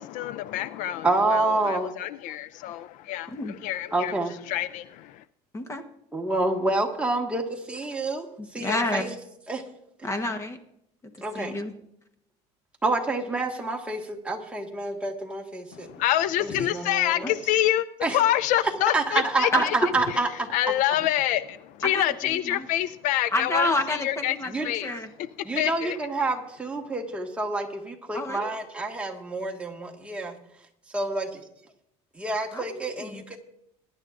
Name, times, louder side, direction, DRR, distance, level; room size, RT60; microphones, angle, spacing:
voice 1, 0.0-3.3 3.6-4.1 4.5-4.8 16.0-17.9 18.1-19.5 20.5-23.7 24.0-24.3 24.6-24.9 25.6-26.0, left 13 dB, 65° left, 0.4 m, -26 dB
voice 2, 1.0-1.9 3.9-4.4 6.1-8.3 8.5-9.1 9.5-9.6 11.2-11.5 12.8-15.9 16.4-17.4 18.0-18.2 18.9-20.3 24.5-24.7 25.4-30.3 30.9-31.4 32.2-33.4, right 2 dB, 10° right, 1.6 m, -28 dB
voice 3, 3.3-3.6 5.5-5.8 8.4-9.1 10.0-10.6 11.3-11.7 17.2-17.3 19.5-19.9 21.8-22.7 23.3-25.1 28.1-28.5 32.5-33.2, left 1 dB, 20° left, 1.1 m, -29 dB
21.5 x 10.5 x 2.5 m
cardioid pair, 135°, 14 cm